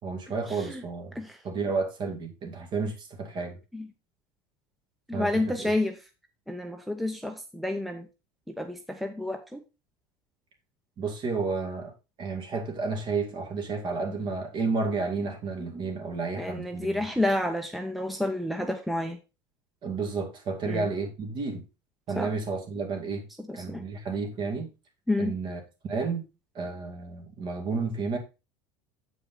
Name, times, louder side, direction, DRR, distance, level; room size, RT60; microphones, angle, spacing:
voice 1, 0.0-1.2 1.4-3.6 5.1-5.7 11.0-11.9 12.2-17.1 19.8-21.6 22.1-23.3 23.5-24.7 25.2-26.2 26.5-28.2, right 4 dB, 45° right, 2.2 m, -31 dB
voice 2, 5.1-6.0 6.5-8.1 8.5-9.6 16.4-19.2 20.7-20.9 22.2-22.3 23.5-23.8 25.1-25.3, left 1 dB, ahead, 0.7 m, -29 dB
7.8 x 4.9 x 3.9 m
supercardioid pair, 110°, 12 cm